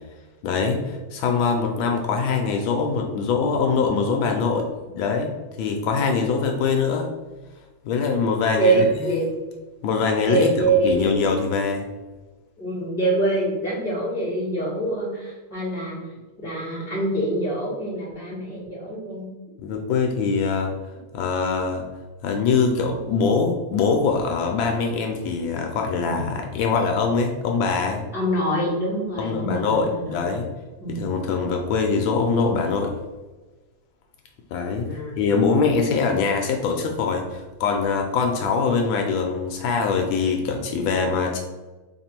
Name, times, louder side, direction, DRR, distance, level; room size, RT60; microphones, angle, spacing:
voice 1, 0.4-4.7 5.0-5.3 5.6-7.1 7.8-9.3 9.8-10.5 10.8-11.9 19.6-20.7 21.1-21.8 22.2-28.0 29.2-30.5 30.9-32.9 34.5-34.9 35.2-41.4, left 5 dB, 75° left, 3 dB, 1.2 m, -23 dB
voice 2, 8.5-9.2 10.2-11.2 12.6-16.0 16.4-19.3 26.1-26.3 28.1-30.3 30.8-31.2 34.9-35.2, right 2 dB, ahead, -7 dB, 0.8 m, -25 dB
3.3 x 2.6 x 4.2 m, 1.2 s
omnidirectional pair, 2.3 m